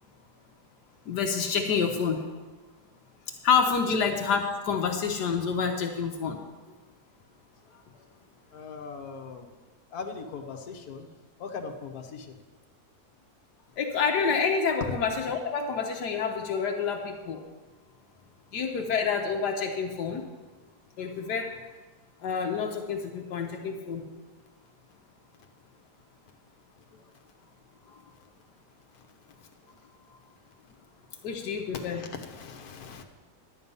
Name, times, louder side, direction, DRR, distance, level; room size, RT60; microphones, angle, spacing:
voice 1, 1.1-2.3 3.4-6.4 13.8-17.4 18.5-20.2 21.0-21.5 22.2-24.0 31.2-32.0, left 5 dB, 80° left, 3 dB, 1.5 m, -28 dB
voice 2, 8.5-9.5 9.9-11.1 11.4-12.4 31.7-33.0, left 5 dB, 65° left, 4 dB, 1.5 m, -40 dB
11.0 x 8.9 x 5.4 m, 1.2 s
omnidirectional pair, 1.8 m